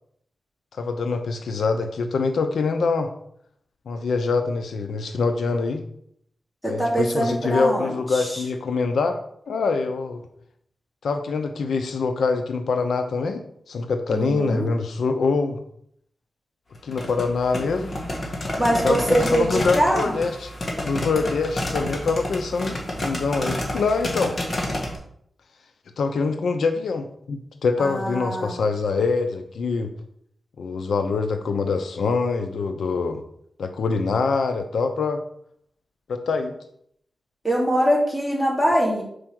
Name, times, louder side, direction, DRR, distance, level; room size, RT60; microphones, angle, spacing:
voice 1, 0.7-3.1 3.9-5.8 6.7-9.2 9.5-10.2 11.0-13.4 13.7-15.6 16.8-17.9 18.8-20.5 20.8-22.8 23.0-24.3 26.0-29.9 30.6-33.2 33.6-35.2 36.1-36.5, left 4 dB, 90° left, 7 dB, 0.6 m, -24 dB
voice 2, 6.6-8.4 14.1-14.7 18.6-20.1 27.8-28.6 37.4-39.0, right 1 dB, 10° left, -5 dB, 2.8 m, -23 dB
sound 1, 16.8-25.0, left 1 dB, 40° left, 1.5 m, -29 dB
5.0 x 4.5 x 6.0 m, 0.71 s
wide cardioid pair, 95°, 0 cm